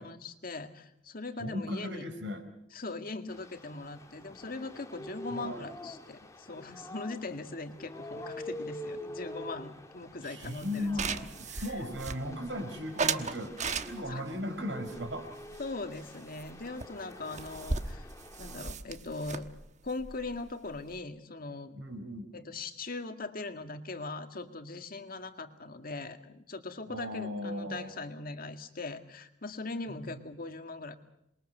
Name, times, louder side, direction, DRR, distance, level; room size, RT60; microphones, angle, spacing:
voice 1, 0.0-2.0 2.7-10.9 11.5-11.6 14.1-14.2 15.6-18.1 18.4-19.5 19.8-21.8 22.3-30.9, left 3 dB, 50° left, 7 dB, 2.0 m, -40 dB
voice 2, 1.4-2.5 5.3-5.7 10.2-13.5 13.8-15.3 21.7-22.3 26.9-27.9 29.9-30.3, left 1 dB, 80° right, 6 dB, 5.4 m, -37 dB
sound 1, 3.3-18.7, left 1 dB, 15° left, 2.0 m, -46 dB
sound 2, 10.4-12.5 13.0-14.3 14.9-16.1 16.4-16.5 16.8-16.9 17.1-21.0, right 4 dB, 40° right, 1.2 m, -36 dB
27.5 x 22.0 x 6.8 m, 0.77 s
head